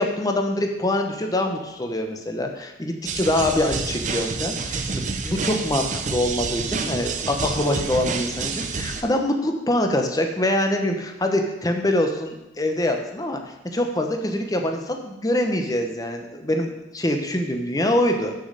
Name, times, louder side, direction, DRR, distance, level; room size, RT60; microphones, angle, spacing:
voice 1, 0.0-13.4 13.7-18.3, left 1 dB, 20° left, 4 dB, 0.9 m, -24 dB
sound 1, 3.1-9.0, right 4 dB, 45° right, 0.7 m, -28 dB
6.8 x 6.3 x 6.6 m, 0.98 s
head